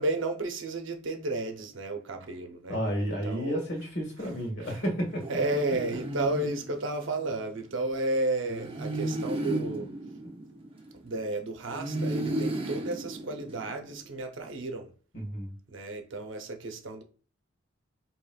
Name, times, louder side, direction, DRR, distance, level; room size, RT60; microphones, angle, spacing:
voice 1, 0.0-2.8 3.2-3.6 4.6-4.8 5.3-9.9 10.9-14.9 15.7-17.0, right 2 dB, 70° right, 0.7 m, -32 dB
voice 2, 2.7-5.2 15.1-15.5, equal, 60° left, 1.5 m, -31 dB
sound 1, 5.2-7.3 8.5-11.2 11.7-13.9, right 1 dB, 25° right, 0.6 m, -34 dB
4.8 x 3.0 x 2.3 m
head